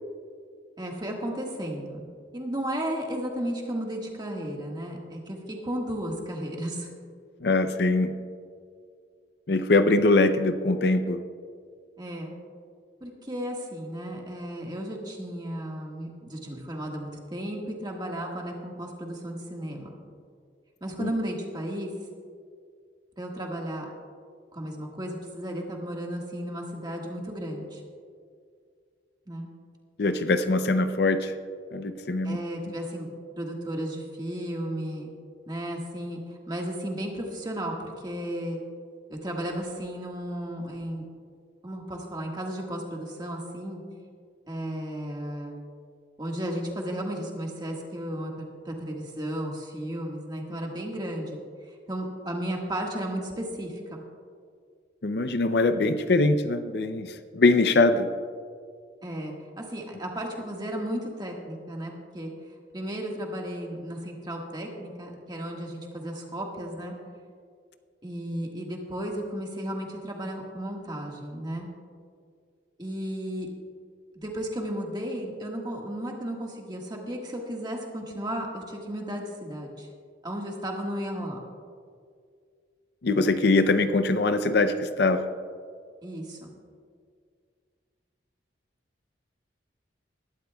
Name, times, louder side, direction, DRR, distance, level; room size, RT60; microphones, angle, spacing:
voice 1, 0.8-2.0 2.3-6.9 12.0-12.3 13.0-20.0 20.8-21.9 23.2-23.9 24.5-27.8 29.3-29.5 32.2-33.1 33.4-35.1 35.5-36.2 36.5-38.6 39.1-41.0 41.6-43.8 44.5-45.6 46.2-54.0 59.0-62.3 62.7-66.9 68.0-71.7 72.8-73.5 74.1-79.9 80.2-81.4 86.0-86.5, equal, 20° right, 0 dB, 1.6 m, -34 dB
voice 2, 7.4-8.1 9.5-11.2 21.0-21.1 30.0-31.3 31.7-32.4 55.0-58.1 83.0-85.3, left 2 dB, 60° left, 9 dB, 0.5 m, -22 dB
20.5 x 12.5 x 2.3 m, 2.1 s
head